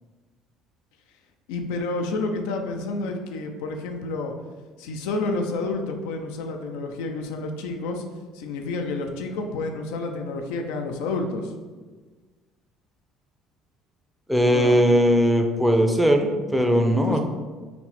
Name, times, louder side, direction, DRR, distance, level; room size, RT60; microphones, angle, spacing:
voice 1, 1.5-4.3 4.8-8.0 8.3-11.5 14.5-14.8 16.9-17.2, left 3 dB, 85° left, 4 dB, 0.4 m, -29 dB
voice 2, 14.3-17.2, equal, 5° right, 3 dB, 0.5 m, -19 dB
4.2 x 2.0 x 4.1 m, 1.4 s
supercardioid pair, 85°, 0 cm